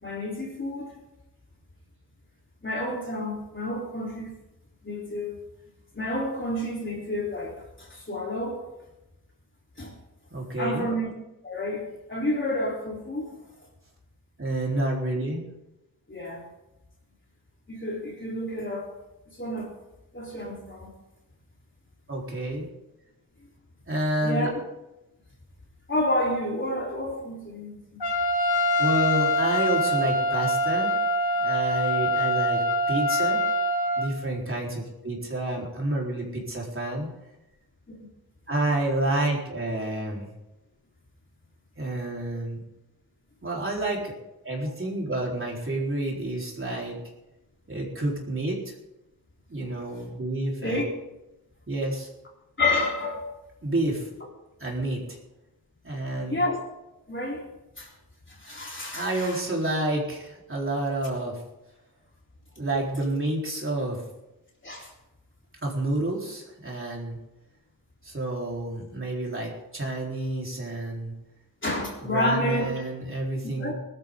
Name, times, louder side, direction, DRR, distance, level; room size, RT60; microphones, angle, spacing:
voice 1, 0.0-1.0 2.6-4.3 4.8-5.4 5.9-8.6 9.8-9.9 10.6-11.1 11.4-13.4 16.1-16.5 17.7-18.9 19.4-19.7 20.1-20.9 24.2-24.5 25.9-27.8 37.9-38.1 50.6-50.9 52.6-53.3 56.3-56.6 57.1-57.4 57.8-57.9 58.3-59.4 64.6-64.9 71.6-72.7 73.6-73.7, left 1 dB, 30° left, -2 dB, 3.7 m, -30 dB
voice 2, 10.3-10.9 14.4-15.5 22.1-22.7 23.9-24.5 28.8-31.0 31.4-33.4 34.0-37.1 38.5-40.3 41.8-42.6 43.4-44.1 44.4-47.0 47.7-48.7 49.5-50.8 51.7-52.1 53.6-54.1 54.6-55.2 55.8-56.4 58.9-61.4 62.6-64.0 65.6-67.2 68.0-71.1 72.0-73.7, right 1 dB, 35° right, -2 dB, 4.1 m, -29 dB
Trumpet, 28.0-34.1, equal, 85° left, 2.0 m, -24 dB
21.0 x 13.0 x 3.8 m, 0.92 s
wide cardioid pair, 125°, 37 cm